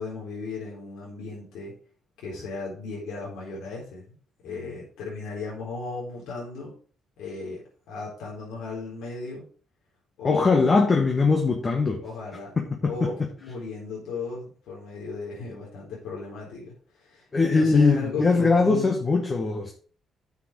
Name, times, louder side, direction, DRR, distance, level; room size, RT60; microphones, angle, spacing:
voice 1, 0.0-1.7 2.2-4.2 4.4-6.7 7.2-7.6 7.9-9.5 10.2-10.5 12.0-12.6 12.8-19.0, left 4 dB, 80° left, -4 dB, 4.1 m, -36 dB
voice 2, 10.2-12.0 12.8-13.1 17.3-19.7, left 4 dB, 35° left, 2 dB, 1.7 m, -21 dB
9.3 x 6.8 x 4.8 m, 0.42 s
cardioid pair, 90°, 0 cm